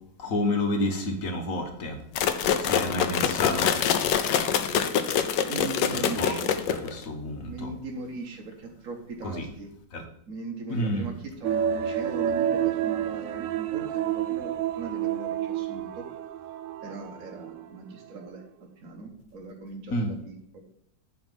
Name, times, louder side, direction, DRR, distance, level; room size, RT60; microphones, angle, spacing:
voice 1, 0.2-2.0 2.6-3.7 5.9-6.4 6.8-7.7 9.2-9.5 9.9-10.0 10.7-11.1 19.9-20.1, left 1 dB, 50° left, 4 dB, 1.6 m, -29 dB
sound 1, 2.2-7.0, left 8 dB, 80° left, 1.3 m, -25 dB
voice 2, 5.5-6.6 7.5-9.7 10.3-16.1 16.8-20.6, right 3 dB, 50° right, 0 dB, 1.5 m, -39 dB
sound 2, 11.4-17.7 18.0-18.1, right 10 dB, 85° right, 1.3 m, -29 dB
11.0 x 4.0 x 5.4 m, 0.70 s
omnidirectional pair, 2.0 m